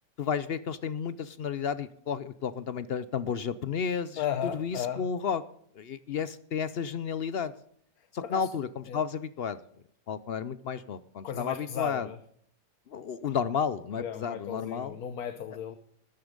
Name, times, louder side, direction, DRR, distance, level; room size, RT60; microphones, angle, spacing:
voice 1, 0.2-5.4 5.8-7.5 8.1-9.6 10.1-12.1 12.9-15.0, left 6 dB, 55° left, 15 dB, 0.7 m, -32 dB
voice 2, 4.2-5.0 8.2-8.5 8.9-9.0 11.2-12.2 14.0-15.8, left 9 dB, 85° left, 10 dB, 1.4 m, -35 dB
13.5 x 9.6 x 5.2 m, 0.66 s
omnidirectional pair, 1.5 m